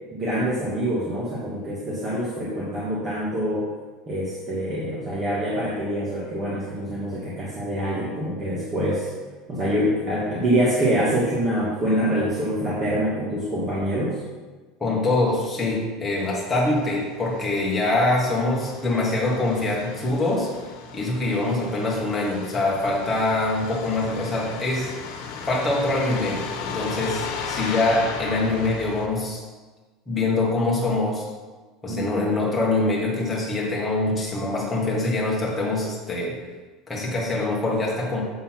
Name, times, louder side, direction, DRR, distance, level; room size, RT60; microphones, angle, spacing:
voice 1, 0.1-3.7 4.1-9.1 9.5-14.2 31.9-32.3, equal, 25° right, -7 dB, 1.5 m, -25 dB
voice 2, 14.8-20.5 20.9-24.9 25.5-29.4 30.1-31.3 31.8-36.4 36.9-38.2, left 2 dB, 10° left, -4 dB, 1.7 m, -24 dB
Truck, 16.2-29.1, left 5 dB, 75° left, 1.2 m, -36 dB
7.6 x 4.1 x 5.8 m, 1.3 s
cardioid pair, 160°, 0 cm